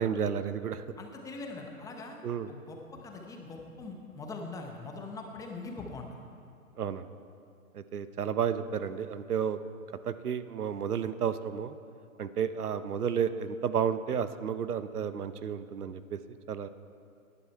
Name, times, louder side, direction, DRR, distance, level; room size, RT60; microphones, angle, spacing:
voice 1, 0.0-0.8 2.2-2.5 6.8-7.1 7.9-9.6 10.1-11.7 12.2-16.2 16.5-16.7, right 7 dB, 80° right, 13 dB, 0.9 m, -31 dB
voice 2, 1.0-2.2 2.5-6.2, left 3 dB, 10° left, 2 dB, 0.9 m, -42 dB
19.0 x 11.0 x 4.5 m, 2.4 s
hypercardioid pair, 135°, 44 cm